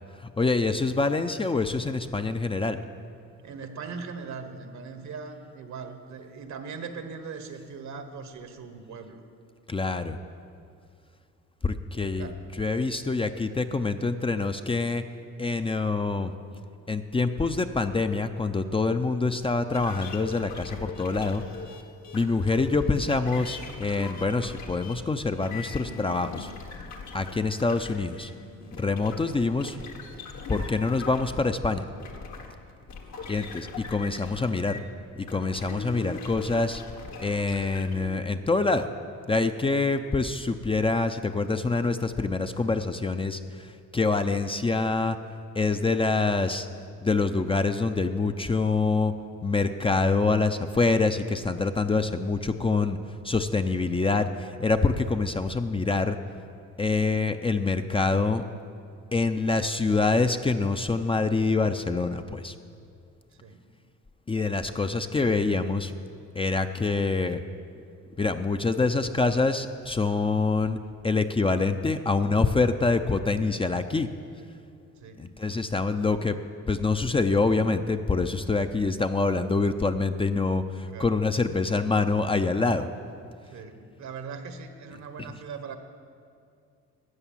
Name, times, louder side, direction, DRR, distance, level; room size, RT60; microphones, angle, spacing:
voice 1, 0.2-2.8 9.7-10.2 11.6-12.3 12.6-15.0 15.4-16.3 16.9-21.4 22.1-26.5 27.1-28.3 28.7-29.8 30.5-31.8 33.3-34.8 35.2-36.8 37.2-38.9 39.3-45.2 45.6-46.7 47.0-49.1 49.4-53.0 53.2-56.2 56.8-58.4 59.1-62.5 64.3-65.9 66.3-67.4 68.2-74.1 75.2-76.4 76.7-82.9 85.2-85.3, left 3 dB, 20° left, 8 dB, 0.5 m, -25 dB
voice 2, 3.4-9.2 12.2-12.4 22.4-22.5 33.2-33.4 63.4-63.6 74.9-75.3 80.8-81.2 83.4-85.8, right 5 dB, 65° right, 8 dB, 1.2 m, -40 dB
sound 1, 19.7-34.9 35.3-38.2, left 4 dB, 65° left, 1.5 m, -41 dB
13.0 x 8.2 x 7.3 m, 2.4 s
cardioid pair, 90°, 30 cm